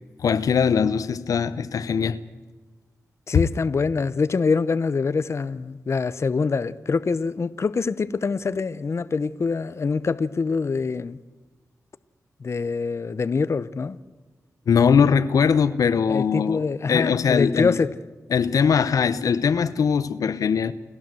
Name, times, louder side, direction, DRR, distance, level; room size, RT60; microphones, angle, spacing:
voice 1, 0.2-2.2 14.7-17.8 18.3-20.7, left 6 dB, 85° left, 0.9 m, -21 dB
voice 2, 3.3-11.2 12.4-14.0 16.1-17.9, left 4 dB, 50° left, 0.8 m, -24 dB
29.0 x 12.5 x 7.7 m
cardioid pair, 70°, 6 cm